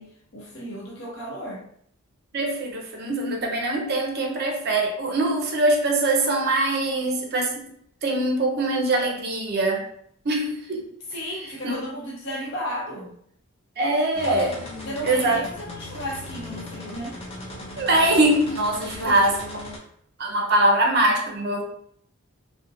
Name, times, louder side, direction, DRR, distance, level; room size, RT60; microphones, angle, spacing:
voice 1, 0.0-1.6 11.1-13.1 14.8-17.2 19.0-19.5, equal, 60° left, -2 dB, 0.7 m, -34 dB
voice 2, 2.3-7.6 8.0-9.8 10.2-10.9 11.6-11.8 13.8-14.6 15.0-15.4 17.8-19.3 20.2-21.6, right 2 dB, 50° right, 1 dB, 0.5 m, -22 dB
sound 1, 14.1-19.8, left 2 dB, 30° left, 0.5 m, -38 dB
2.6 x 2.1 x 2.6 m, 0.67 s
head